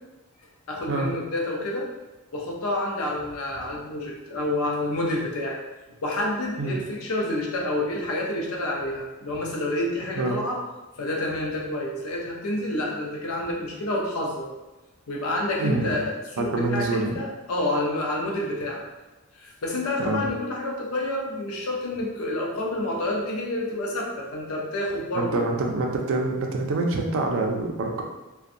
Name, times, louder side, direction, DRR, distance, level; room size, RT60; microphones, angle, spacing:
voice 1, 0.7-1.9 2.3-5.6 6.0-10.6 11.0-14.5 15.1-18.8 19.4-25.4, left 1 dB, 75° left, -1 dB, 0.6 m, -28 dB
voice 2, 15.6-15.9 16.4-17.2 20.0-20.2 25.1-28.0, right 2 dB, 65° right, 1 dB, 0.4 m, -26 dB
2.6 x 2.2 x 2.5 m, 1.1 s
head